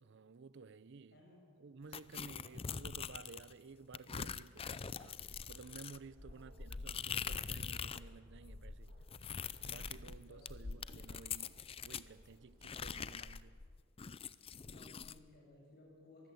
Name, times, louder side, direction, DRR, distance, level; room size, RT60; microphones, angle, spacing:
voice 1, 0.0-1.2 1.6-8.9 9.6-13.6, right 4 dB, 60° right, 0.5 m, -55 dB
voice 2, 1.1-1.5 2.3-2.7 6.2-6.5 9.8-10.8 12.5-12.6 14.6-16.3, left 2 dB, 50° left, 7.3 m, -62 dB
sound 1, 1.9-3.5 3.9-8.1 8.4-12.1 12.6-15.2, left 6 dB, 30° left, 0.5 m, -44 dB
Bark, 5.1-13.1, equal, 80° right, 5.4 m, -59 dB
23.0 x 15.5 x 7.8 m
head